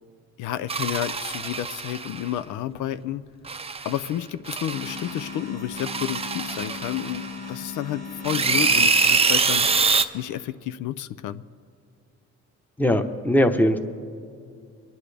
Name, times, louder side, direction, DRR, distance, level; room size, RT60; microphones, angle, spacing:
voice 1, 0.4-3.2 3.8-9.8 10.1-11.4, left 12 dB, 80° left, 14 dB, 0.5 m, -31 dB
sound 1, 0.7-2.3 3.4-4.1 4.5-5.3 5.8-7.5 8.2-10.0, right 4 dB, 20° right, 0.6 m, -24 dB
sound 2, 4.7-9.4, left 5 dB, 30° left, 1.4 m, -38 dB
voice 2, 12.8-13.8, equal, 5° left, 8 dB, 0.9 m, -20 dB
23.5 x 10.5 x 3.4 m, 2.2 s
cardioid pair, 90°, 30 cm